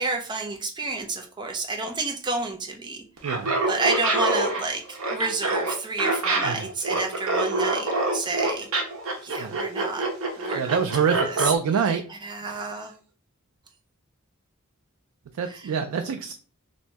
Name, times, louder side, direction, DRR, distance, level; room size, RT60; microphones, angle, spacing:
voice 1, 0.0-3.0 3.7-8.7 9.2-10.1 10.4-12.9 15.4-15.7, right 3 dB, 20° right, 3 dB, 0.5 m, -30 dB
Laughter, 3.2-11.5, right 2 dB, 70° right, 0.9 m, -26 dB
voice 2, 3.2-3.6 6.4-6.7 9.4-9.6 10.5-12.1 12.4-12.9 15.4-16.3, right 6 dB, 85° right, 6 dB, 0.3 m, -26 dB
3.0 x 2.6 x 3.3 m, 0.38 s
head